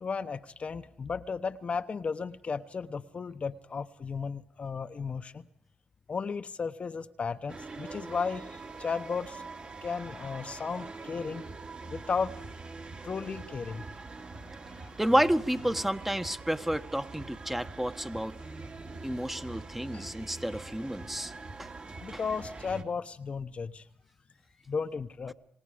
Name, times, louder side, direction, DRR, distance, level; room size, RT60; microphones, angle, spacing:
voice 1, 0.0-5.5 6.1-9.4 9.8-11.4 11.9-12.3 13.0-13.8 14.7-14.8 19.9-20.1 22.0-23.8 24.7-25.3, left 5 dB, 45° left, 9 dB, 1.0 m, -34 dB
sound 1, 7.5-22.8, right 3 dB, 45° right, 2.7 m, -44 dB
voice 2, 15.0-18.4 19.0-21.3 21.6-21.7 22.1-22.2, equal, 10° right, 9 dB, 1.3 m, -30 dB
28.0 x 18.5 x 5.1 m, 0.67 s
supercardioid pair, 55°, 3 cm